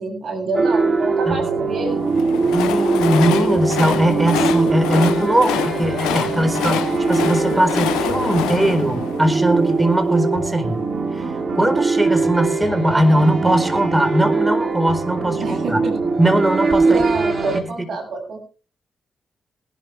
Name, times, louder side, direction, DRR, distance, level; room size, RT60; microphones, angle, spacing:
voice 1, 0.0-2.0 15.4-15.9 16.8-18.4, right 3 dB, 70° right, 3 dB, 7.1 m, -27 dB
sound 1, 0.5-17.6, right 4 dB, 50° right, 3.7 m, -21 dB
Train, 2.0-10.1, left 10 dB, 85° left, 0.7 m, -26 dB
voice 2, 2.5-10.8 11.1-15.8 16.2-17.0 17.5-17.9, right 1 dB, 15° right, 7 dB, 4.2 m, -20 dB
20.0 x 11.5 x 3.3 m, 0.36 s
hypercardioid pair, 40°, 0 cm